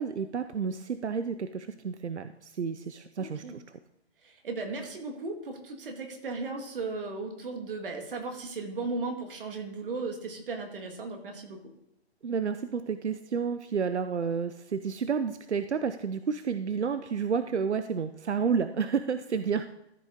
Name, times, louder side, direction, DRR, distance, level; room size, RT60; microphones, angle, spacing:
voice 1, 0.0-3.6 12.2-19.7, right 6 dB, 90° right, 10 dB, 0.7 m, -30 dB
voice 2, 3.2-3.6 4.2-11.6, right 3 dB, 55° right, 3 dB, 2.1 m, -36 dB
14.0 x 5.4 x 3.7 m, 0.84 s
hypercardioid pair, 145°, 33 cm